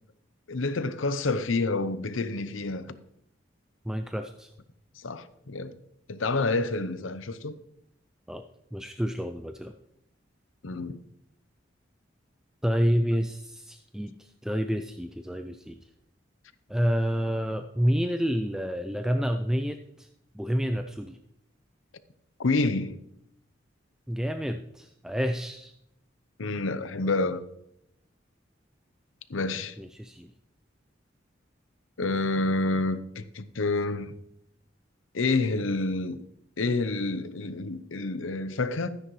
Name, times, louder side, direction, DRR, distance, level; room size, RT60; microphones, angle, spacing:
voice 1, 0.5-3.0 5.0-5.7 6.1-7.6 10.6-11.0 22.4-23.0 26.4-27.4 29.3-29.8 32.0-34.1 35.1-36.2 36.6-38.9, left 3 dB, 90° left, 0.7 m, -28 dB
voice 2, 3.8-4.5 8.3-8.4 8.7-9.7 12.6-15.8 16.7-20.1 20.3-21.2 24.1-25.7 29.8-30.3, equal, 5° right, 0.4 m, -29 dB
13.5 x 9.8 x 3.2 m
head